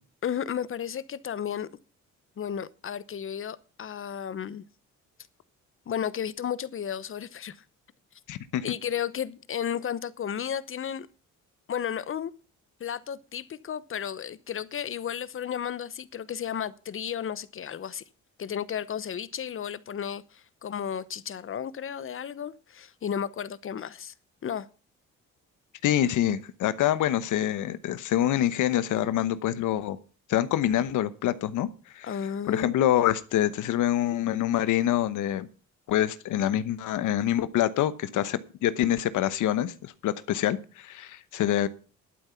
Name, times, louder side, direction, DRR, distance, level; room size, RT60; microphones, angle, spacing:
voice 1, 0.2-1.7 2.4-4.6 5.9-7.6 8.6-11.1 11.7-12.3 12.8-18.0 18.4-24.1 24.4-24.7 32.0-32.8, left 8 dB, 45° left, 0.9 m, -33 dB
voice 2, 8.3-8.7 25.8-30.0 30.3-31.7 31.9-32.1 32.5-35.5 35.9-41.7, left 12 dB, 80° left, 1.0 m, -26 dB
11.5 x 9.1 x 5.8 m
cardioid pair, 90°, 30 cm